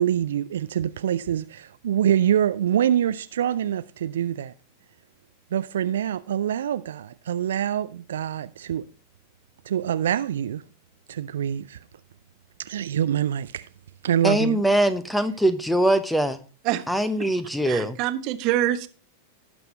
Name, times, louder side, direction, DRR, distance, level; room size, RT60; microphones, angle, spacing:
voice 1, 0.0-4.5 5.5-8.8 9.7-10.6 11.1-11.8 12.6-13.7 14.0-14.6, right 10 dB, 60° right, 0.4 m, -25 dB
voice 2, 14.2-16.4 16.9-18.0, right 1 dB, 5° left, 1.0 m, -22 dB
voice 3, 17.6-18.9, right 13 dB, 40° right, 1.0 m, -25 dB
18.0 x 6.1 x 3.1 m
figure-of-eight pair, 90°, 0 cm